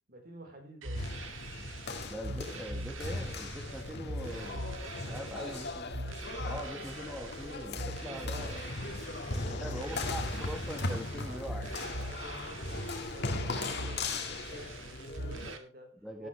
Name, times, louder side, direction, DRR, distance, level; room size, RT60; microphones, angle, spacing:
voice 1, 0.1-1.1 2.5-2.6 4.1-5.7 6.1-6.5 8.1-8.4 9.1-10.0 11.3-11.5 12.0-16.3, right 1 dB, 50° right, 3 dB, 4.6 m, -50 dB
sound 1, 0.8-15.6, right 1 dB, 75° right, 2.0 m, -42 dB
sound 2, 0.9-15.6, left 2 dB, 55° left, 2.1 m, -38 dB
voice 2, 2.1-4.6 5.1-6.0 6.4-8.7 9.5-11.7 16.0-16.3, equal, 5° right, 3 dB, 1.6 m, -42 dB
sound 3, 8.1-13.2, left 1 dB, 40° left, 2.4 m, -47 dB
13.0 x 12.5 x 3.4 m, 0.36 s
head